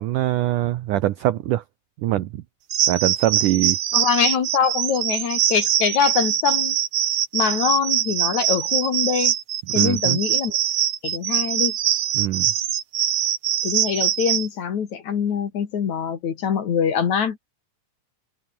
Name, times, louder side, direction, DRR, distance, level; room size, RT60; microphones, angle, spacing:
voice 1, 0.0-1.6 2.0-2.4 2.9-3.8 9.7-10.2 12.1-12.5, right 14 dB, 80° right, 1.8 m, -23 dB
sound 1, 2.7-14.5, right 10 dB, 55° right, 2.2 m, -23 dB
voice 2, 3.9-6.8 7.3-9.3 9.7-10.6 11.0-11.7 13.6-17.4, left 7 dB, 50° left, 3.0 m, -23 dB
omnidirectional pair, 4.8 m